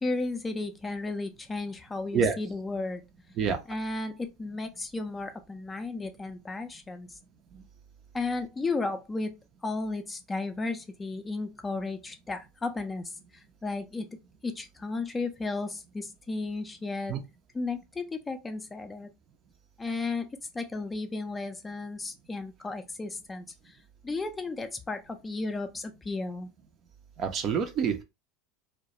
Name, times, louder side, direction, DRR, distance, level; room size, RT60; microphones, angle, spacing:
voice 1, 0.0-3.0 3.7-7.2 8.1-9.3 9.6-14.2 14.4-17.2 17.5-19.1 19.8-26.5, left 3 dB, 15° left, 0.4 m, -34 dB
voice 2, 27.2-28.0, right 6 dB, 40° right, 0.5 m, -27 dB
2.2 x 2.1 x 2.8 m
figure-of-eight pair, 80°, 0 cm